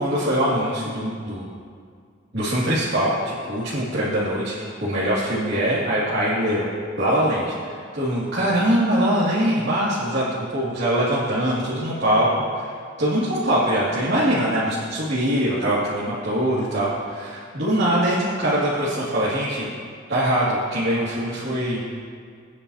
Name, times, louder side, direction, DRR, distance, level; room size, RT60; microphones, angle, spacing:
voice 1, 0.0-1.5 2.3-6.7 7.0-12.3 12.5-12.6 13.0-19.7 20.1-21.8, right 1 dB, 55° right, -10 dB, 2.3 m, -22 dB
22.0 x 9.8 x 2.8 m, 2.1 s
head